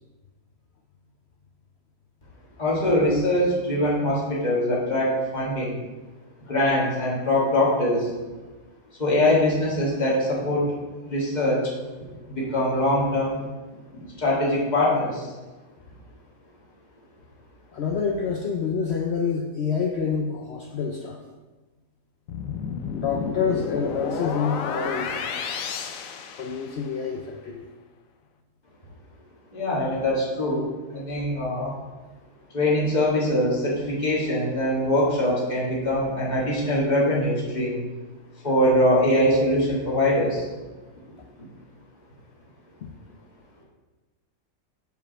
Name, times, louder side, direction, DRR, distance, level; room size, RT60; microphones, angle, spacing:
voice 1, 2.6-5.8 6.5-8.1 9.0-10.7 11.0-11.6 12.3-13.4 13.9-15.3 29.5-31.7 32.5-37.8 38.4-40.4, left 1 dB, 25° left, -6 dB, 2.0 m, -23 dB
voice 2, 17.7-21.2 22.9-25.2 26.4-27.7 42.8-42.9, left 5 dB, 85° left, 3 dB, 0.5 m, -27 dB
sound 1, 22.3-27.0, left 6 dB, 65° left, 0.9 m, -31 dB
5.3 x 5.0 x 6.2 m, 1.2 s
omnidirectional pair, 1.8 m